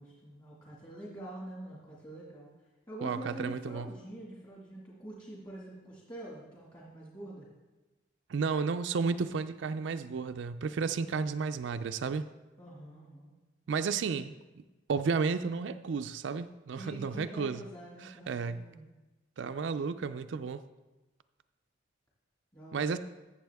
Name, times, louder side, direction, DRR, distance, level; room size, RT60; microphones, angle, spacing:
voice 1, 0.0-2.5 2.9-7.5 12.6-13.3 16.7-18.9 22.5-23.0, right 1 dB, 25° left, -5 dB, 1.9 m, -45 dB
voice 2, 3.0-3.9 8.3-12.2 13.7-14.3 14.9-17.6 18.3-18.6 19.4-20.6 22.7-23.0, right 5 dB, 75° right, 10 dB, 0.4 m, -32 dB
14.5 x 7.0 x 3.5 m, 1.1 s
head